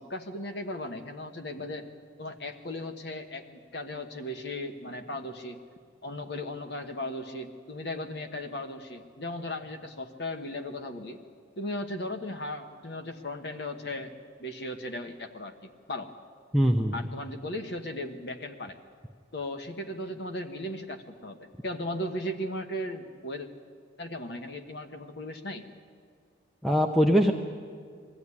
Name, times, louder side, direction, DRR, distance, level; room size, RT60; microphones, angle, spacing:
voice 1, 0.0-1.9 2.2-5.6 6.0-11.2 11.6-16.1 16.9-18.8 19.3-23.5 24.0-25.6, left 1 dB, 60° left, 6 dB, 1.4 m, -37 dB
voice 2, 16.5-16.9 26.6-27.3, equal, ahead, 1 dB, 0.7 m, -22 dB
22.0 x 15.0 x 9.8 m, 2.1 s
head